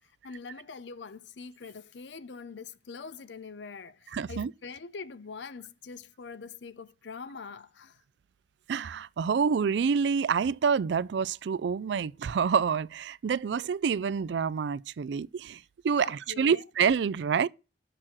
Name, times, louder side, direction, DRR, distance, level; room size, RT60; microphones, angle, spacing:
voice 1, 0.2-8.0 16.0-16.6, left 5 dB, 80° left, 0.6 m, -44 dB
voice 2, 4.1-4.5 8.7-17.5, right 6 dB, 70° right, 0.4 m, -27 dB
6.7 x 6.1 x 7.3 m
head